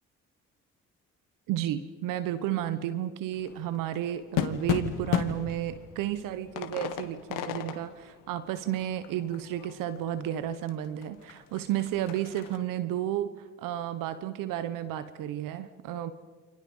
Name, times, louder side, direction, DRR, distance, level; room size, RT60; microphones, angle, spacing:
voice 1, 1.5-13.3 13.6-16.1, right 11 dB, 85° right, 13 dB, 1.2 m, -32 dB
sound 1, 3.4-10.3 10.7-10.8 11.0-12.6, left 10 dB, 85° left, 1.8 m, -35 dB
28.5 x 28.0 x 5.6 m, 1.3 s
supercardioid pair, 65°, 32 cm